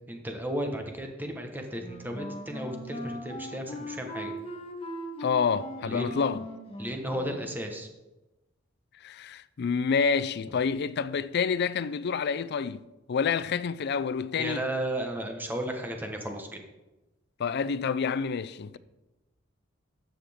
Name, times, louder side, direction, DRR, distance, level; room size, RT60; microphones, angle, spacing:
voice 1, 0.1-4.3 5.8-6.1 6.8-7.9 14.3-16.6, right 1 dB, 10° right, 1.2 m, -34 dB
Wind instrument woodwind instrument, 1.8-7.7, equal, 30° left, 1.5 m, -39 dB
voice 2, 5.2-6.4 9.0-14.7 17.4-18.8, left 6 dB, 55° left, 0.4 m, -28 dB
13.0 x 7.6 x 3.6 m
head